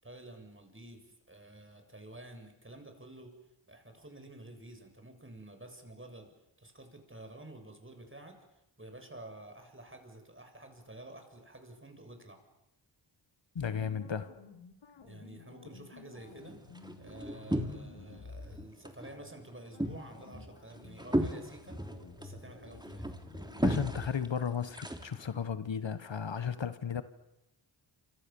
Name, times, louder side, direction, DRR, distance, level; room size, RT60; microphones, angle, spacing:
voice 1, 0.0-3.3 3.7-6.3 6.6-8.4 8.8-12.4 15.0-16.6 17.0-21.8 22.2-23.1, right 1 dB, 25° right, 5 dB, 7.1 m, -50 dB
voice 2, 13.5-14.3 23.6-27.0, left 7 dB, 70° left, 12 dB, 1.5 m, -34 dB
sound 1, 13.6-18.7 19.0-19.3 19.7-24.1, left 4 dB, 85° left, 4.0 m, -52 dB
sound 2, 16.2-18.1 18.4-19.1 19.4-25.4, right 1 dB, 10° right, 3.4 m, -36 dB
29.0 x 26.0 x 7.2 m, 0.88 s
cardioid pair, 55°, 46 cm